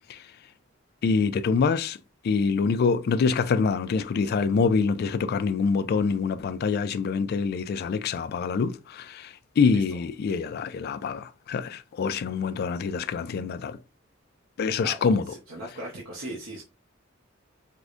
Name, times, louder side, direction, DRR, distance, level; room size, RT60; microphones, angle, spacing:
voice 1, 1.0-2.0 2.2-13.8 14.6-15.2, left 5 dB, 50° left, 0.3 m, -25 dB
voice 2, 15.3-16.6, right 1 dB, 80° right, 0.8 m, -38 dB
4.6 x 2.1 x 2.4 m
head